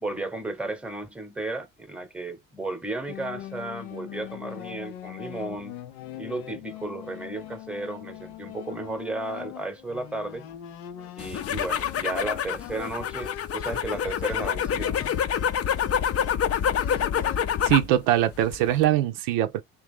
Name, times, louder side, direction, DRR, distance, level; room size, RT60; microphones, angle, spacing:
voice 1, 0.0-5.8 6.2-10.4 11.2-15.1, right 2 dB, 5° right, 0.9 m, -34 dB
sound 1, 3.1-17.6, left 12 dB, 90° left, 0.6 m, -41 dB
sound 2, 11.2-17.9 18.3-18.8, left 8 dB, 45° left, 0.6 m, -27 dB
voice 2, 17.6-19.6, right 12 dB, 85° right, 0.6 m, -22 dB
3.3 x 2.9 x 3.6 m
supercardioid pair, 75°, 34 cm